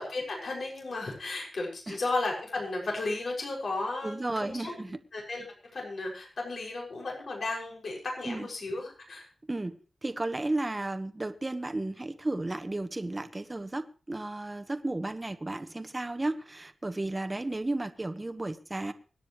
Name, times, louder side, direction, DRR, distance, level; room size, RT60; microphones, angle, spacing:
voice 1, 0.0-4.7 5.1-5.4 5.7-9.3, left 2 dB, 70° left, -1 dB, 6.4 m, -34 dB
voice 2, 4.0-5.0 8.2-8.5 9.5-18.9, right 2 dB, 25° right, 10 dB, 1.3 m, -33 dB
25.0 x 10.0 x 3.2 m, 0.37 s
wide cardioid pair, 80°, 0 cm